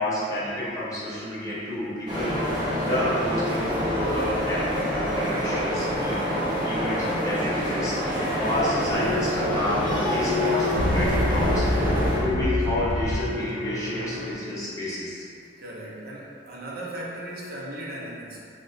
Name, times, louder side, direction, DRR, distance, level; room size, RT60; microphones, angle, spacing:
voice 1, 0.0-6.2 6.6-11.7 12.2-15.2, left 1 dB, 20° left, -9 dB, 0.7 m, -30 dB
sound 1, 2.1-12.2, equal, 25° right, 0.7 m, -27 dB
sound 2, 8.9-14.3, left 2 dB, 85° left, 0.5 m, -27 dB
voice 2, 15.6-18.5, right 1 dB, 55° right, -5 dB, 0.6 m, -37 dB
2.8 x 2.2 x 3.7 m, 2.2 s
head